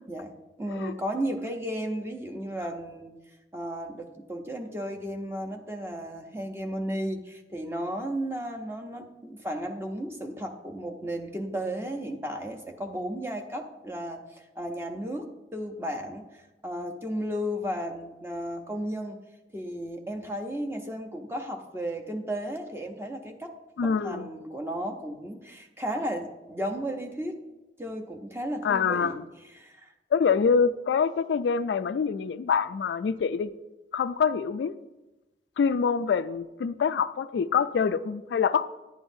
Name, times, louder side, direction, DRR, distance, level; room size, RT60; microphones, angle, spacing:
voice 1, 0.6-3.2 3.5-19.2 19.5-23.5 23.8-27.4 27.8-29.2 29.5-29.9, equal, 15° right, 4 dB, 0.7 m, -34 dB
voice 2, 23.8-24.3 28.6-29.2 30.1-33.5 33.9-34.7 35.6-38.6, left 6 dB, 85° left, 13 dB, 0.3 m, -25 dB
10.0 x 9.3 x 2.7 m, 1.0 s
head